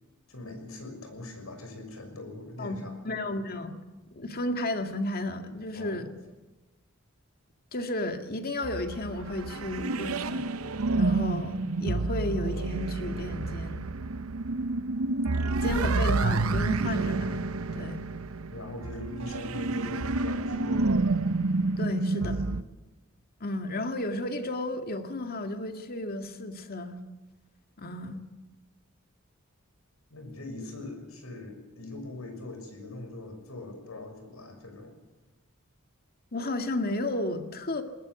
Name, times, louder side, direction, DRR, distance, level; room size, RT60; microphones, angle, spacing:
voice 1, 0.3-3.0 5.7-6.0 15.8-15.9 18.5-20.9 22.0-22.6 30.1-34.9, left 2 dB, 85° left, 5 dB, 6.4 m, -41 dB
voice 2, 3.0-3.7 4.1-6.1 7.7-10.5 11.0-13.9 15.6-17.4 17.7-18.0 21.8-22.4 23.4-27.0 27.8-28.2 36.3-37.8, left 1 dB, 45° left, 6 dB, 2.0 m, -33 dB
sound 1, 8.6-22.6, right 3 dB, 80° right, 0.8 m, -29 dB
20.5 x 20.0 x 8.2 m, 1.2 s
head